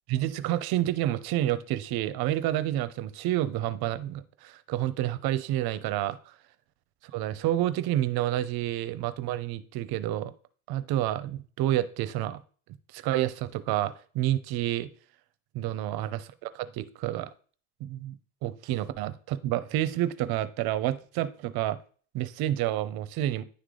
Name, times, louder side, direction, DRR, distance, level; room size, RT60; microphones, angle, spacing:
voice 1, 0.1-6.3 7.1-10.3 10.7-12.4 12.9-14.9 15.5-17.3 17.8-18.2 18.4-21.8 22.1-23.4, right 13 dB, 80° right, 14 dB, 0.6 m, -29 dB
9.9 x 3.3 x 3.7 m, 0.43 s
cardioid pair, 95°, 36 cm